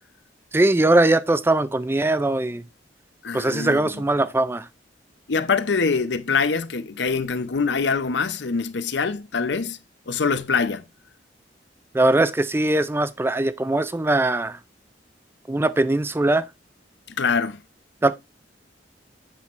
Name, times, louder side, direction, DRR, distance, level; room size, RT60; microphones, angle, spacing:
voice 1, 0.5-2.7 3.3-4.7 11.9-14.6 15.5-16.5 18.0-18.2, right 2 dB, 15° right, 0.3 m, -21 dB
voice 2, 3.2-3.9 5.3-9.8 10.1-10.8 17.2-17.6, left 5 dB, 75° left, 0.7 m, -24 dB
8.2 x 5.8 x 3.1 m
head